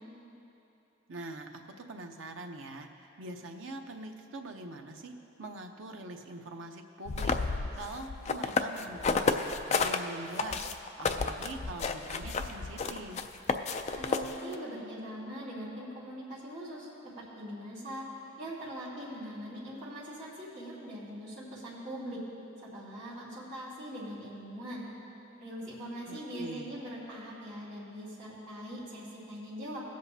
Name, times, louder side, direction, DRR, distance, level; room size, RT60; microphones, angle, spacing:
voice 1, 1.1-10.7 11.0-13.2 26.1-26.7, right 2 dB, 90° right, 4 dB, 0.8 m, -43 dB
sound 1, 7.1-10.0 10.4-14.5, left 4 dB, 35° left, 0.4 m, -31 dB
voice 2, 13.9-16.9 17.2-18.0 18.4-22.2 22.6-24.8 25.4-29.8, equal, 35° right, -11 dB, 2.1 m, -41 dB
20.0 x 7.8 x 2.8 m, 2.9 s
head